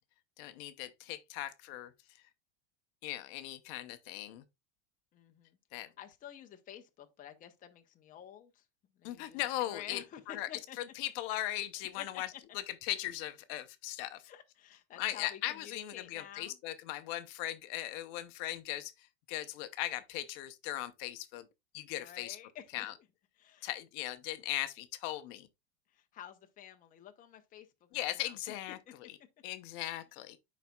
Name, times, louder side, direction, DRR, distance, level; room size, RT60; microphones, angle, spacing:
voice 1, 0.4-1.9 3.0-4.4 5.7-5.9 9.0-10.0 10.3-10.5 10.8-12.3 12.8-14.2 15.0-21.5 21.7-22.4 22.7-22.9 23.6-25.5 27.9-28.8 29.4-30.4, left 14 dB, 55° left, 0.7 m, -38 dB
voice 2, 5.1-5.6 6.0-8.6 8.9-10.8 12.0-12.4 14.3-16.6 22.0-22.9 23.4-23.7 25.9-27.7 28.2-28.5 28.9-29.0, left 11 dB, 25° left, 0.7 m, -50 dB
10.0 x 4.1 x 2.3 m
supercardioid pair, 140°, 35 cm